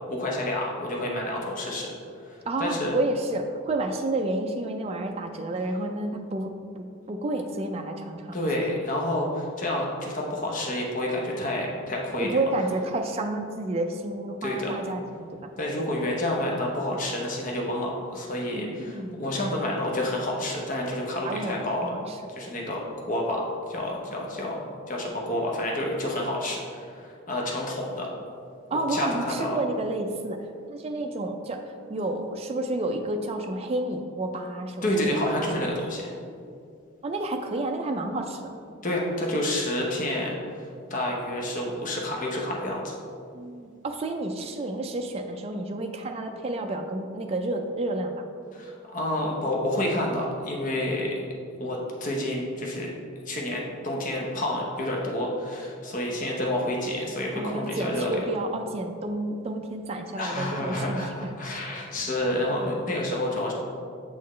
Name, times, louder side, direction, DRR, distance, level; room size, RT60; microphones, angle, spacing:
voice 1, 0.1-1.9 2.3-3.0 8.3-12.3 14.4-14.7 15.6-21.8 22.3-23.4 23.7-28.1 28.9-29.6 34.8-36.2 38.8-43.0 48.5-51.1 51.6-52.9 53.3-58.2 60.2-63.5, left 1 dB, 40° left, -2 dB, 0.7 m, -29 dB
voice 2, 2.5-6.5 6.8-8.4 12.2-15.5 18.5-19.2 21.2-22.2 28.7-35.5 37.0-38.5 43.3-48.2 57.3-61.3, right 2 dB, 30° right, 4 dB, 0.3 m, -30 dB
7.5 x 4.0 x 3.1 m, 2.4 s
head